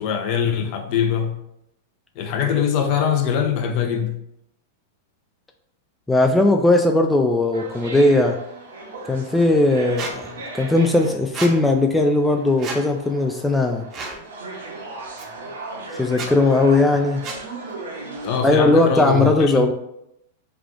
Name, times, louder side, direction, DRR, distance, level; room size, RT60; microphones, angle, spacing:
voice 1, 0.0-1.3 2.2-4.1 18.2-19.7, left 8 dB, 50° left, 5 dB, 0.6 m, -22 dB
voice 2, 6.1-8.4 9.1-13.8 15.9-17.2 18.4-19.7, left 2 dB, 5° left, 3 dB, 0.3 m, -18 dB
sound 1, 7.5-18.4, right 3 dB, 80° right, 1.0 m, -37 dB
Squeak, 10.0-10.1 11.3-11.5 12.6-12.8 13.9-14.2 15.2-15.3 16.1-16.3 17.2-17.4, right 3 dB, 35° right, 0.7 m, -30 dB
3.4 x 2.4 x 3.6 m, 0.81 s
hypercardioid pair, 110°, 0 cm